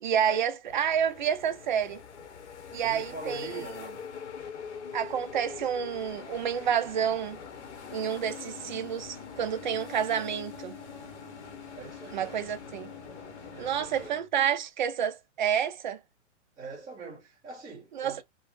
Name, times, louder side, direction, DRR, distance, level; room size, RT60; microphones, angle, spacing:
voice 1, 0.0-2.0 2.7-3.5 4.9-7.4 7.9-10.7 12.1-12.9 13.6-16.0 17.9-18.2, right 8 dB, 40° right, 0.4 m, -29 dB
sound 1, 0.7-14.1, left 7 dB, 70° left, 0.9 m, -44 dB
voice 2, 2.8-4.0 11.7-12.4 13.5-14.3 16.6-18.2, right 3 dB, 10° right, 0.7 m, -43 dB
Bowed string instrument, 7.7-14.4, equal, 10° left, 1.2 m, -51 dB
3.4 x 2.0 x 2.4 m
hypercardioid pair, 165°, 36 cm